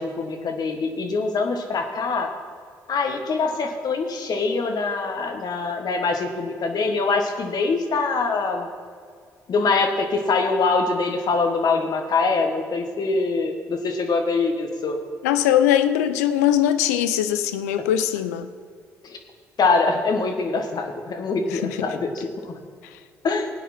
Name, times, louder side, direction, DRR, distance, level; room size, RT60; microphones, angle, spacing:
voice 1, 0.0-2.3 2.9-8.7 9.5-15.0 19.0-19.2 19.6-22.6 23.2-23.5, left 4 dB, 55° left, 4 dB, 1.5 m, -24 dB
voice 2, 15.2-18.5 21.5-21.9, left 11 dB, 85° left, 11 dB, 0.5 m, -21 dB
16.0 x 9.2 x 4.3 m, 2.1 s
hypercardioid pair, 45°, 8 cm